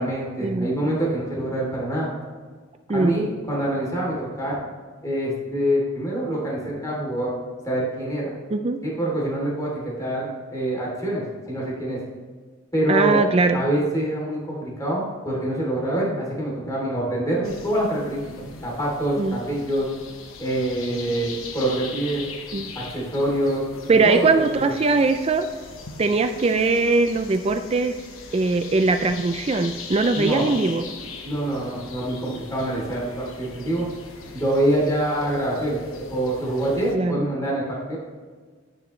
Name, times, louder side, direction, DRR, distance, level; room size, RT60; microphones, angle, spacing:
voice 1, 0.0-2.1 2.9-4.6 5.0-7.3 7.6-8.3 8.8-12.0 12.7-13.2 13.5-19.9 20.4-22.3 22.7-23.6 24.0-24.7 30.1-30.6 31.2-33.9 34.3-35.8 36.1-37.6 37.9-38.0, right 1 dB, 15° left, -4 dB, 3.0 m, -25 dB
voice 2, 12.9-13.6 19.2-19.4 22.5-22.7 23.9-25.5 26.0-27.9 28.3-30.8 36.9-37.3, right 3 dB, 30° right, 8 dB, 0.4 m, -21 dB
sound 1, 17.4-37.0, left 4 dB, 85° left, 1.1 m, -40 dB
11.5 x 9.9 x 3.2 m, 1.5 s
head